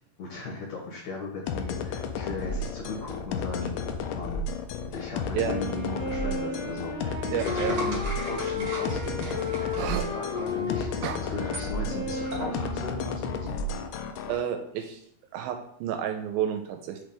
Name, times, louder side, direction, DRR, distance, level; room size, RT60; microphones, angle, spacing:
voice 1, 0.2-3.8 4.1-4.4 4.9-13.5, left 3 dB, 65° left, -2 dB, 2.0 m, -37 dB
sound 1, 1.5-14.3, left 4 dB, 80° left, 2.0 m, -33 dB
Wind instrument woodwind instrument, 5.4-13.9, left 2 dB, 20° left, 0.7 m, -34 dB
voice 2, 7.3-7.8 9.8-10.0 11.0-11.2 14.3-15.0 15.3-17.0, right 9 dB, 85° right, 5 dB, 2.3 m, -30 dB
sound 2, 7.4-10.6 11.5-11.7 12.3-12.6, right 1 dB, 40° right, 1.8 m, -38 dB
5.9 x 3.3 x 5.1 m, 0.67 s
omnidirectional pair, 4.3 m